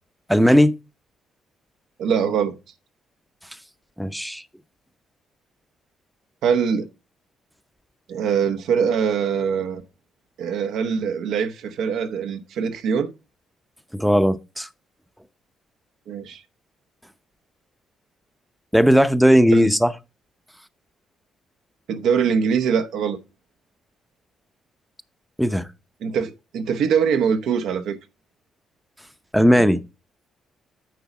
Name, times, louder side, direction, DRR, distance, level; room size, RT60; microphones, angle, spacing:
voice 1, 0.3-0.7 4.0-4.4 13.9-14.7 18.7-19.9 25.4-25.6 29.3-29.8, equal, ahead, 0.7 m, -16 dB
voice 2, 2.0-2.6 6.4-6.9 8.1-9.8 10.4-13.1 16.1-16.4 19.5-19.7 21.9-23.2 26.0-28.0, right 6 dB, 80° right, 0.9 m, -23 dB
9.3 x 3.9 x 6.0 m
cardioid pair, 90°, 0 cm